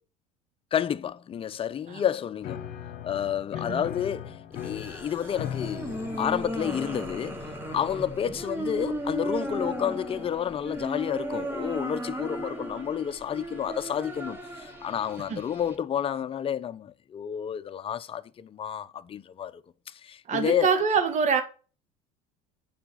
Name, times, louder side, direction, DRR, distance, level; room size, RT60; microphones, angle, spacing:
voice 1, 0.7-2.7 3.0-7.5 7.7-19.6 19.9-20.7, left 9 dB, 30° left, 0.7 m, -30 dB
Piano, 2.4-10.9, left 9 dB, 60° left, 1.2 m, -41 dB
sound 1, 4.5-15.7, right 1 dB, 15° right, 2.4 m, -36 dB
voice 2, 20.3-21.4, right 5 dB, 45° right, 1.9 m, -24 dB
7.4 x 5.0 x 7.1 m
supercardioid pair, 95°, 17 cm